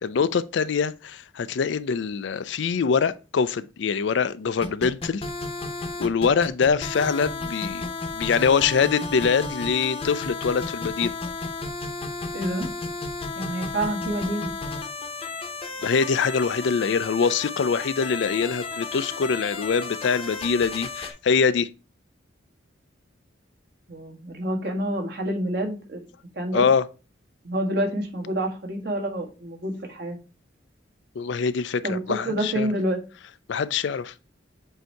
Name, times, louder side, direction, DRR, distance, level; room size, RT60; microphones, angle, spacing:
voice 1, 0.0-5.2 6.0-7.9 8.1-11.1 15.8-21.7 26.5-26.8 31.2-32.7 33.5-34.1, left 5 dB, 70° left, 0.4 m, -24 dB
sound 1, 4.6-21.1, left 3 dB, 30° left, 0.8 m, -33 dB
voice 2, 12.3-12.7 13.3-14.5 23.9-26.0 26.3-26.7 27.4-30.2 31.8-33.0, right 1 dB, 55° right, 1.4 m, -28 dB
7.8 x 2.7 x 4.5 m
head